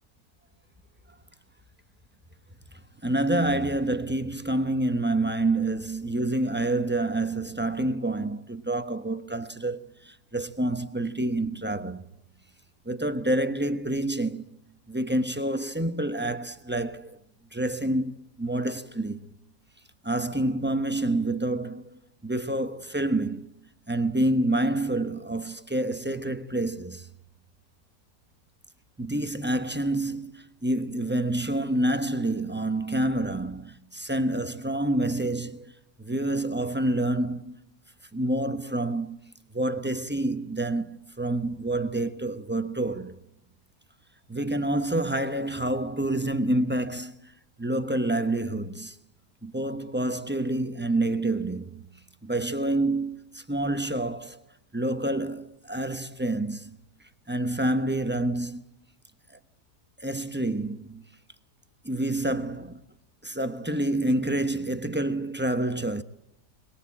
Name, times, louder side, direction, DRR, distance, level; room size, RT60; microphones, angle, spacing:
voice 1, 3.0-12.0 12.9-14.4 14.9-17.2 17.5-19.2 20.0-23.5 23.9-27.1 29.0-35.7 36.0-37.6 38.1-39.2 39.5-43.2 44.3-47.3 47.6-48.9 49.4-51.9 52.2-54.4 54.7-56.8 57.3-58.6 59.3-59.4 60.0-61.0 61.8-62.8 63.2-66.0, right 1 dB, 10° right, 0.8 m, -28 dB
23.0 x 21.5 x 8.6 m
omnidirectional pair, 1.8 m